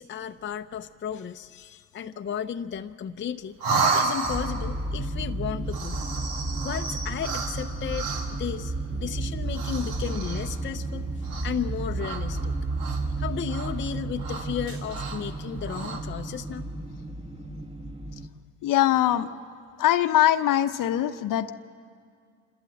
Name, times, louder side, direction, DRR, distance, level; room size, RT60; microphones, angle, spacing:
voice 1, 0.0-3.6 3.9-6.0 6.6-12.5 13.2-16.7, left 8 dB, 30° left, 7 dB, 0.6 m, -34 dB
sound 1, 3.6-4.7 5.6-8.5 9.5-10.6 11.2-11.7 12.0-13.2 13.5-13.7 14.2-15.2 15.6-16.0, right 4 dB, 85° right, 2.0 m, -31 dB
sound 2, 4.2-18.3, right 2 dB, 15° right, 1.3 m, -32 dB
voice 2, 18.6-19.3 19.8-21.5, left 12 dB, 60° left, 11 dB, 0.9 m, -22 dB
27.5 x 13.0 x 7.7 m, 2.2 s
supercardioid pair, 75°, 37 cm